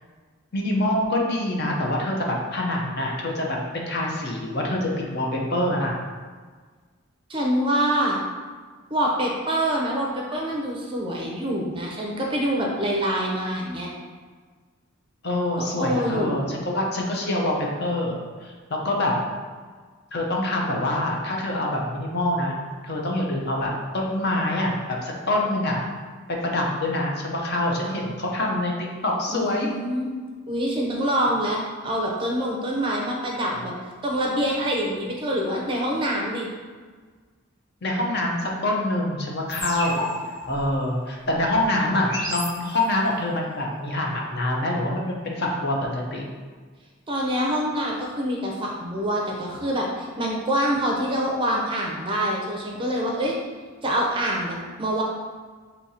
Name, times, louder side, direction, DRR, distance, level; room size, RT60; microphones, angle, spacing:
voice 1, 0.5-6.0 15.2-19.1 20.1-22.5 22.8-25.8 26.4-29.7 37.8-40.1 40.5-46.2, left 1 dB, 50° left, -1 dB, 0.7 m, -25 dB
voice 2, 7.3-8.2 8.9-13.9 15.6-16.5 27.8-27.9 29.3-30.1 30.5-33.7 34.0-36.5 47.1-53.4 53.8-55.0, equal, 25° right, -2 dB, 0.5 m, -25 dB
sound 1, 39.5-43.2, left 1 dB, 25° left, 1.1 m, -34 dB
6.2 x 2.8 x 2.7 m, 1.5 s
head